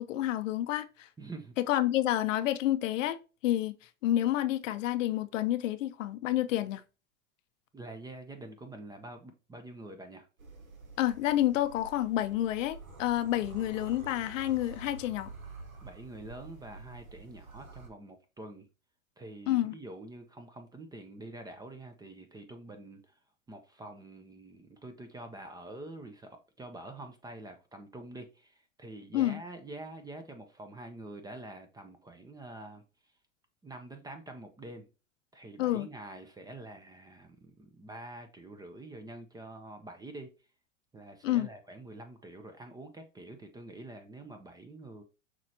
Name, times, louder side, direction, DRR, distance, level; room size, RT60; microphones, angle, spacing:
voice 1, 0.0-1.1 1.6-3.2 3.4-3.7 4.0-6.8 11.0-15.3 19.5-19.8 29.1-29.4 35.6-35.9 41.2-41.5, left 13 dB, 65° left, 0.6 m, -29 dB
voice 2, 1.2-1.5 7.7-10.3 15.8-18.7 19.2-23.1 23.5-32.8 33.6-34.9 35.3-40.3 40.9-45.0, right 2 dB, 10° right, 0.5 m, -46 dB
sound 1, 10.4-17.9, right 4 dB, 85° right, 1.5 m, -48 dB
6.0 x 3.2 x 2.8 m
hypercardioid pair, 105°, 41 cm